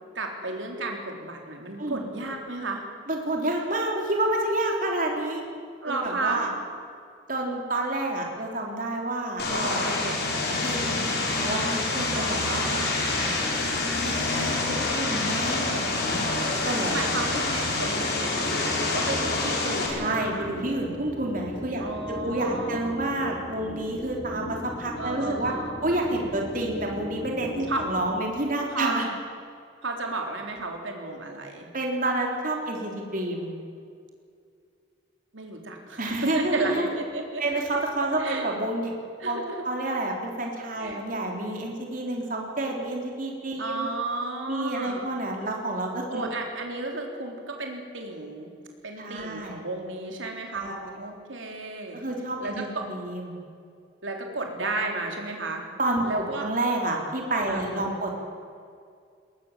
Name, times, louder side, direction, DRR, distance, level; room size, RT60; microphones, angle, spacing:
voice 1, 0.2-2.8 5.8-6.5 12.1-12.7 16.9-20.5 21.8-22.9 25.0-25.9 27.7-27.8 28.7-29.0 29.8-31.7 35.3-37.6 38.2-38.5 39.2-39.5 40.8-41.0 43.6-45.1 46.1-48.5 48.8-52.0 52.4-52.9 54.0-55.6 56.0-56.5 57.5-58.0, right 2 dB, 85° right, 2 dB, 3.6 m, -33 dB
voice 2, 3.1-5.4 5.8-6.5 7.3-12.8 13.3-16.3 16.6-17.0 20.0-25.5 25.8-29.1 31.7-33.5 36.0-36.9 37.4-38.9 39.3-43.9 44.5-46.3 49.0-49.6 50.5-50.8 51.9-53.3 55.8-58.1, right 1 dB, 45° right, 1 dB, 3.5 m, -29 dB
Vehicle, 9.4-19.9, left 3 dB, 55° left, 4.9 m, -27 dB
sound 1, 13.1-28.2, left 1 dB, 15° left, 1.5 m, -38 dB
21.5 x 19.5 x 7.4 m, 2.3 s
head